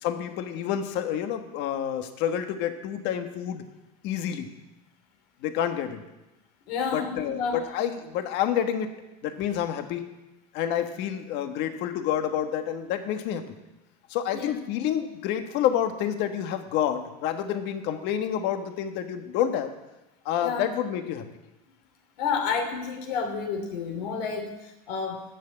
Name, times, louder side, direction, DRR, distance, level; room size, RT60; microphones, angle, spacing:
voice 1, 0.0-3.6 4.0-4.5 5.4-6.0 6.9-8.9 9.2-10.0 10.5-13.5 14.1-19.7 20.2-21.3, left 9 dB, 60° left, 7 dB, 1.4 m, -28 dB
voice 2, 6.7-7.6 14.3-14.6 20.4-20.6 22.2-25.2, left 5 dB, 80° left, 5 dB, 2.9 m, -30 dB
11.5 x 7.0 x 8.8 m, 1.0 s
supercardioid pair, 115°, 20 cm